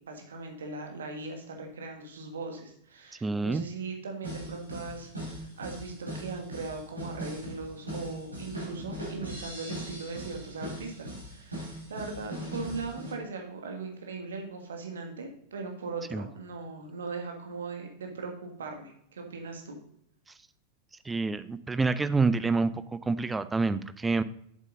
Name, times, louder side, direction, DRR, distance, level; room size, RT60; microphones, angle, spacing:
voice 1, 0.0-19.8, right 3 dB, 65° right, 3 dB, 1.8 m, -39 dB
voice 2, 3.2-3.6 16.1-16.3 21.0-24.2, right 3 dB, 10° right, 14 dB, 0.5 m, -27 dB
sound 1, 4.2-13.1, right 1 dB, 80° right, 3.7 m, -39 dB
8.3 x 7.4 x 3.8 m, 0.69 s
figure-of-eight pair, 90°, 0 cm